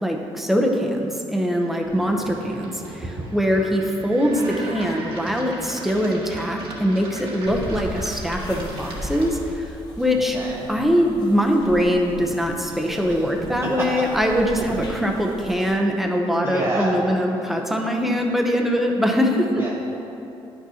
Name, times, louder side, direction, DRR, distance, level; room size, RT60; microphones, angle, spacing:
voice 1, 0.0-10.4 10.7-19.5, equal, ahead, 1 dB, 0.7 m, -22 dB
sound 1, 1.8-9.6, right 1 dB, 65° right, 1.6 m, -38 dB
voice 2, 2.3-3.3 10.3-10.7 13.1-13.3 13.6-14.0 14.5-14.6 16.4-17.0 19.5-19.7, right 1 dB, 35° right, -6 dB, 1.0 m, -30 dB
sound 2, 7.4-15.7, equal, 45° left, 1.3 m, -37 dB
10.5 x 6.1 x 2.8 m, 2.8 s
cardioid pair, 115°, 10 cm